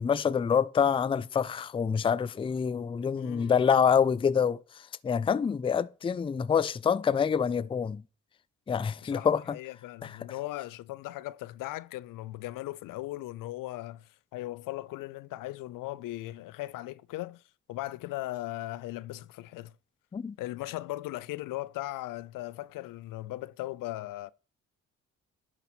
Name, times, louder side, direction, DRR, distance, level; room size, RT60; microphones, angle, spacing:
voice 1, 0.0-4.6 5.0-8.0 8.7-9.6 10.0-10.1 20.1-20.3, left 7 dB, 15° left, 0.4 m, -26 dB
voice 2, 3.2-3.7 9.0-17.4 17.7-19.7 20.4-24.3, left 17 dB, 75° left, 0.5 m, -38 dB
11.0 x 4.1 x 6.0 m
supercardioid pair, 75°, 33 cm